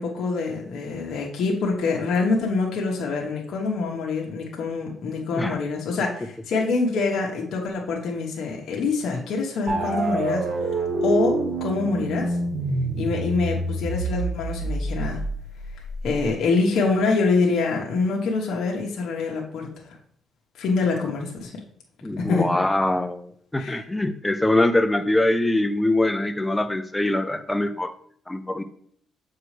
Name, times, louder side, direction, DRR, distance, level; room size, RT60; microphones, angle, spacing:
voice 1, 0.0-10.4 11.0-12.3 13.0-15.2 16.0-19.9 20.6-21.5 22.2-22.5 23.6-23.8, left 4 dB, 70° left, -1 dB, 1.2 m, -25 dB
sound 1, 9.7-16.3, right 2 dB, 45° right, 1.2 m, -27 dB
voice 2, 22.0-27.9 28.3-28.6, left 1 dB, 10° left, 10 dB, 0.5 m, -23 dB
7.4 x 4.7 x 3.3 m, 0.63 s
cardioid pair, 90°, 0 cm